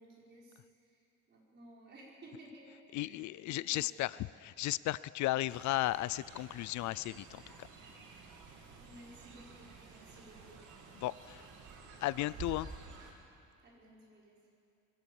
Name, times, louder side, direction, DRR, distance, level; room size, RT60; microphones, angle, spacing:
voice 1, 0.0-4.2 8.8-10.7 11.4-11.5 13.6-14.4, right 1 dB, 35° right, -4 dB, 5.5 m, -57 dB
voice 2, 2.9-7.7 11.0-11.5 12.0-12.7, left 16 dB, 70° left, 19 dB, 0.4 m, -35 dB
Fowl, 5.5-13.1, right 4 dB, 85° right, 3.0 m, -51 dB
22.0 x 17.5 x 7.2 m, 2.4 s
cardioid pair, 160°, 30 cm